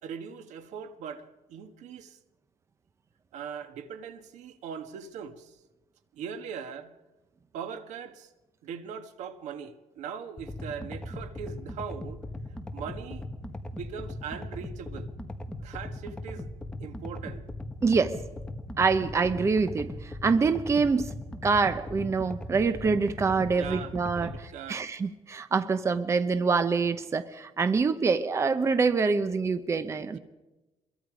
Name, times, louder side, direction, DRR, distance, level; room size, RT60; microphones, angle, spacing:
voice 1, 0.0-2.2 3.3-5.6 6.1-6.9 7.5-8.3 8.6-12.2 12.7-13.3 13.7-15.1 15.6-16.5 16.8-17.5 23.6-24.8 30.1-30.2, right 7 dB, 75° right, 1.6 m, -40 dB
sound 1, 10.4-24.4, left 1 dB, 5° left, 1.3 m, -39 dB
voice 2, 17.8-18.2 18.8-21.1 21.4-30.2, right 4 dB, 25° right, 0.8 m, -25 dB
25.0 x 22.0 x 5.1 m
cardioid pair, 155°, 12 cm